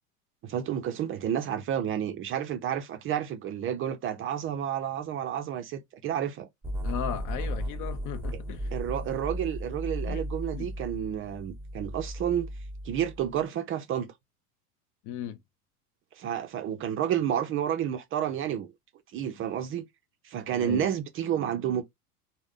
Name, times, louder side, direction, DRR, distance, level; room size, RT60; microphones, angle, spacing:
voice 1, 0.4-6.5 8.3-8.4 8.7-12.5 12.8-14.1 16.2-18.7 19.1-19.9 20.2-21.8, right 10 dB, 30° right, 0.4 m, -30 dB
sound 1, 6.6-13.4, equal, 5° right, 0.9 m, -35 dB
voice 2, 6.8-8.7 10.0-10.2 10.5-10.7 15.0-15.4 20.6-20.9, left 10 dB, 40° left, 0.5 m, -36 dB
3.5 x 2.1 x 3.6 m
hypercardioid pair, 80°, 46 cm